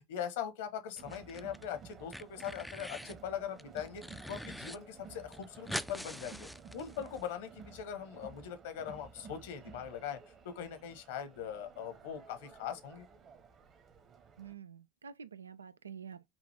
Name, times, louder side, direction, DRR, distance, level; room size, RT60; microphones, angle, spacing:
voice 1, 0.1-4.0 4.3-6.5 6.7-10.2 10.4-13.1, left 8 dB, 70° left, 1.2 m, -41 dB
sound 1, 1.0-1.7 1.9-3.2 3.6-4.8 5.0-5.1 5.3-7.2, equal, ahead, 0.4 m, -43 dB
Crowd, 1.0-14.5, right 5 dB, 40° right, 1.0 m, -54 dB
voice 2, 14.4-16.3, right 7 dB, 90° right, 0.4 m, -48 dB
6.0 x 2.5 x 3.4 m
hypercardioid pair, 80°, 0 cm